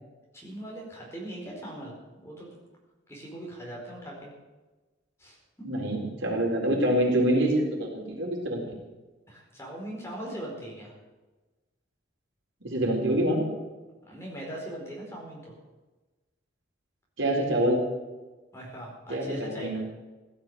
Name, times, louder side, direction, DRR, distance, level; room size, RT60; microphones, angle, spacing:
voice 1, 0.3-1.9 2.2-2.6 3.1-4.3 5.2-5.7 9.3-10.9 14.1-15.5 18.5-19.8, right 1 dB, 15° left, -3 dB, 4.5 m, -40 dB
voice 2, 5.6-8.8 12.6-13.4 17.2-17.8 19.1-19.8, right 1 dB, 80° right, -1 dB, 4.2 m, -26 dB
16.5 x 12.0 x 6.8 m, 1.2 s
head